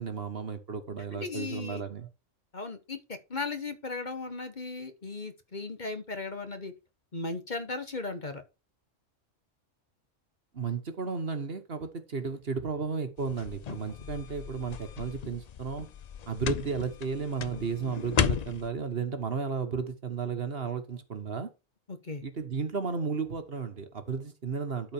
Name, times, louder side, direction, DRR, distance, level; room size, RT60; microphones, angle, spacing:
voice 1, 0.0-2.1 10.5-15.9 16.3-21.5 22.2-24.9, right 5 dB, 50° right, 1.5 m, -33 dB
voice 2, 1.1-1.8 2.5-6.7 7.1-8.4 21.9-22.2, left 3 dB, 40° left, 1.3 m, -36 dB
sound 1, 13.2-18.7, left 9 dB, 60° left, 0.4 m, -34 dB
12.0 x 4.6 x 4.4 m
omnidirectional pair, 1.3 m